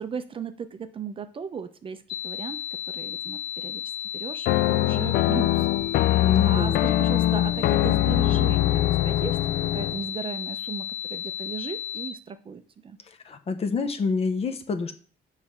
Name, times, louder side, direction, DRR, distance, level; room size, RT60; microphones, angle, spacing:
voice 1, 0.0-2.6 2.8-3.8 4.1-5.7 5.9-13.0, right 6 dB, 30° right, 10 dB, 0.5 m, -37 dB
sound 1, 2.1-12.1, left 10 dB, 85° left, 1.0 m, -34 dB
sound 2, 4.5-10.0, left 14 dB, 70° left, 0.4 m, -22 dB
voice 2, 6.2-6.8 13.1-14.9, left 4 dB, 35° left, 9 dB, 0.7 m, -28 dB
6.9 x 3.2 x 5.5 m, 0.43 s
cardioid pair, 110°, 17 cm